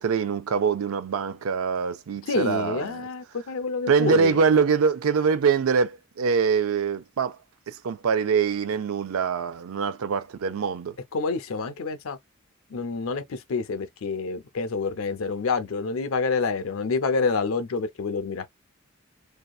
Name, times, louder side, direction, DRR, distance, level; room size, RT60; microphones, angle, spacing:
voice 1, 0.0-3.1 3.9-7.4 7.7-10.9, right 5 dB, 85° right, 0.4 m, -24 dB
voice 2, 2.3-4.3 11.1-12.2 12.7-18.5, left 4 dB, 80° left, 0.5 m, -27 dB
2.8 x 2.2 x 2.3 m
head